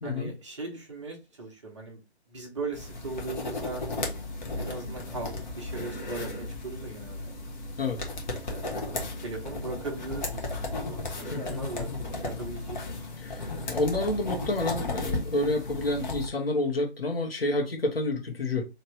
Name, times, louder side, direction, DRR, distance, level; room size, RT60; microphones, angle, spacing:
voice 1, 0.0-2.0 2.3-3.8 4.6-7.3 8.5-13.0, right 3 dB, 25° right, 0 dB, 0.8 m, -39 dB
sound 1, 2.7-16.3, left 2 dB, 40° left, 1.1 m, -35 dB
voice 2, 11.3-11.6 11.9-12.0 13.2-18.6, left 2 dB, 60° left, 1 dB, 1.3 m, -29 dB
3.1 x 2.8 x 3.1 m, 0.27 s
figure-of-eight pair, 145°, 34 cm